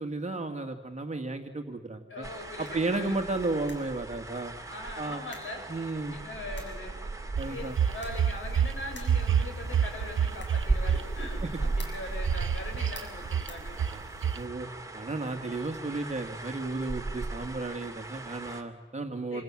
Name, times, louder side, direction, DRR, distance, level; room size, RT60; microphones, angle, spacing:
voice 1, 0.0-2.2 2.6-4.5 5.0-5.2 5.7-6.2 7.4-7.7 11.4-11.5 14.3-14.7 14.9-19.4, right 2 dB, 35° right, 4 dB, 2.2 m, -33 dB
voice 2, 2.1-3.1 4.7-5.7 6.1-7.0 7.4-13.8 19.3-19.4, left 2 dB, 85° left, 4 dB, 6.7 m, -41 dB
sound 1, 2.2-18.6, right 3 dB, 15° right, 2.6 m, -37 dB
sound 2, 2.5-14.4, left 2 dB, 65° left, 7.0 m, -55 dB
sound 3, 7.4-8.7 9.0-11.0 12.3-13.0 13.3-13.5 13.8-14.0 14.2-14.4, right 8 dB, 75° right, 1.0 m, -27 dB
27.5 x 27.0 x 7.6 m, 1.3 s
wide cardioid pair, 130°, 21 cm